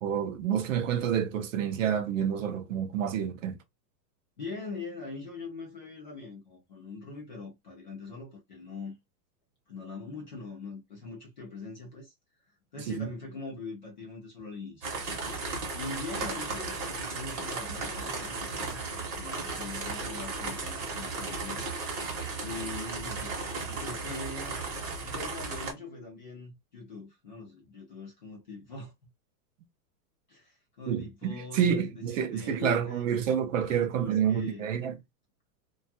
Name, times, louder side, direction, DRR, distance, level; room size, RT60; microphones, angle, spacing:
voice 1, 0.0-3.6 12.9-13.1 30.9-35.0, right 8 dB, 55° right, 0.5 m, -28 dB
voice 2, 4.4-9.0 9.7-12.1 12.7-15.0 15.4-18.8 19.1-21.7 22.4-23.3 23.7-24.6 25.0-28.9 30.3-33.1 33.6-34.7, left 3 dB, 30° left, 0.4 m, -42 dB
sound 1, 14.8-25.7, right 3 dB, 30° right, 0.8 m, -35 dB
2.5 x 2.3 x 2.6 m
supercardioid pair, 170°, 50 cm